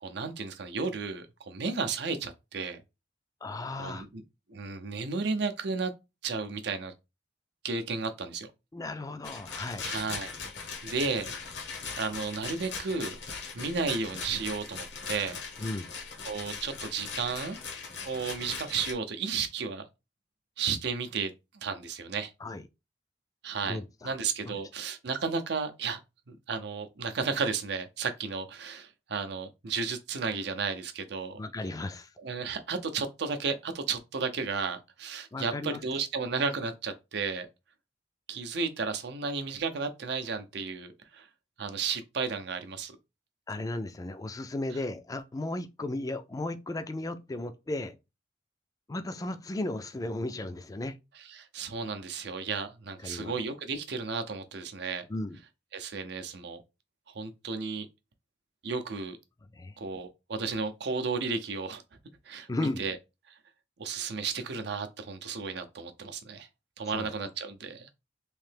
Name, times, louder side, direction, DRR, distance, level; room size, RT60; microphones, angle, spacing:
voice 1, 0.0-2.8 3.8-4.2 4.5-5.9 6.2-6.9 7.6-8.5 9.8-10.3 10.8-11.3 12.0-13.2 13.5-15.4 16.2-17.6 18.0-19.9 20.6-22.3 23.4-26.0 26.3-31.4 32.2-37.5 38.3-41.3 41.6-42.9 51.3-55.0 55.7-56.6 57.1-57.9 58.6-59.2 59.8-61.8 62.3-63.0 63.3-63.4 63.8-66.5 66.8-67.9, right 5 dB, 65° right, 0.6 m, -33 dB
voice 2, 3.4-4.1 8.7-9.9 15.6-15.9 22.4-22.6 23.6-24.1 24.5-24.6 31.4-32.1 35.3-35.8 43.5-47.9 48.9-51.0 53.0-53.3 55.1-55.4 59.5-59.8 62.5-62.8 66.9-67.1, left 2 dB, 20° left, 0.4 m, -35 dB
Rattle, 9.2-18.9, left 5 dB, 70° left, 0.9 m, -40 dB
3.2 x 2.7 x 3.3 m
head